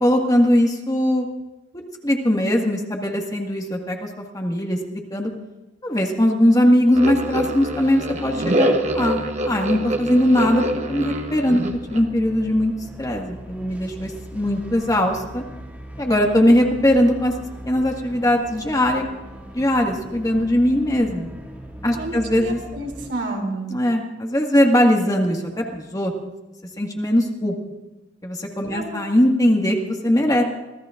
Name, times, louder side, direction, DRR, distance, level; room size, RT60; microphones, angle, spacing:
voice 1, 0.0-1.3 2.0-4.1 4.3-5.3 5.8-10.6 10.9-11.6 11.9-12.7 13.0-15.4 16.0-17.3 17.7-19.0 19.5-21.3 21.8-22.6 23.7-26.1 26.8-27.5 28.2-30.4, left 1 dB, 20° left, 1 dB, 1.8 m, -20 dB
sound 1, 6.9-12.0, right 1 dB, 40° right, 1.1 m, -25 dB
sound 2, 11.6-23.1, right 1 dB, 10° right, 2.3 m, -39 dB
voice 2, 22.0-23.7 28.7-29.0, right 2 dB, 70° right, 1 dB, 3.1 m, -30 dB
25.5 x 16.0 x 2.5 m, 1.1 s
head